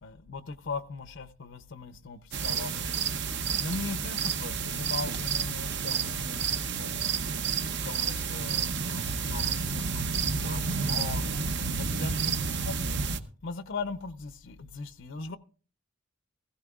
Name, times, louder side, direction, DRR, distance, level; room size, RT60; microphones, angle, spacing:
voice 1, 0.0-3.2 3.6-7.1 7.8-12.9 13.4-15.4, left 4 dB, 65° left, 0.6 m, -39 dB
sound 1, 2.3-13.2, right 5 dB, 60° right, 0.8 m, -30 dB
16.0 x 15.5 x 2.4 m
head